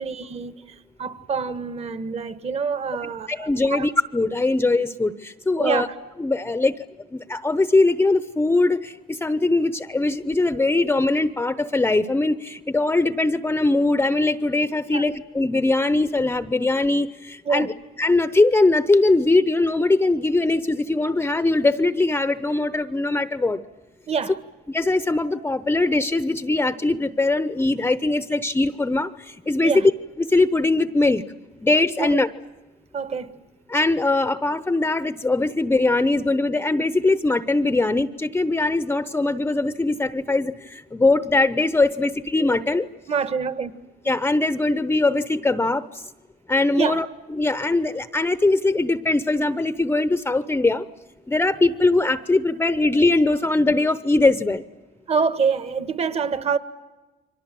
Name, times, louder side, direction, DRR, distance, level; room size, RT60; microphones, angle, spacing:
voice 1, 0.0-3.9 5.6-5.8 14.9-15.0 17.4-17.7 24.1-24.3 29.6-29.9 32.0-32.2 32.9-33.4 43.1-43.7 46.8-47.0 55.1-56.6, right 5 dB, 40° right, 1.5 m, -26 dB
voice 2, 3.3-5.9 6.2-6.8 7.1-17.7 18.0-23.6 24.7-29.8 30.2-31.2 31.6-32.3 33.7-42.9 44.1-46.0 46.5-50.8 51.3-54.6, left 2 dB, 15° left, 0.8 m, -21 dB
29.5 x 23.5 x 7.7 m
cardioid pair, 110°, 17 cm